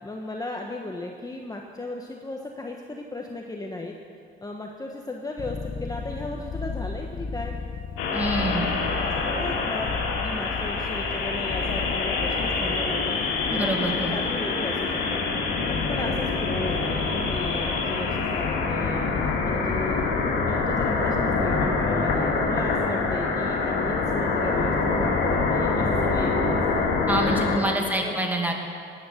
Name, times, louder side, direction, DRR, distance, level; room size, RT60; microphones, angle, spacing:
voice 1, 0.0-4.0 4.4-7.5 8.5-9.9 10.2-13.2 13.5-15.2 15.6-19.1 19.4-20.1 20.4-26.6 27.4-28.2, left 2 dB, 20° left, 1 dB, 1.2 m, -35 dB
sound 1, 5.4-13.9, left 4 dB, 45° left, 1.2 m, -35 dB
sound 2, 8.0-27.6, left 4 dB, 90° left, 2.3 m, -25 dB
voice 2, 8.1-8.7 13.5-14.2 27.1-28.5, right 1 dB, 10° right, 1 dB, 2.4 m, -26 dB
17.0 x 10.0 x 6.6 m, 2.3 s
cardioid pair, 90°, 20 cm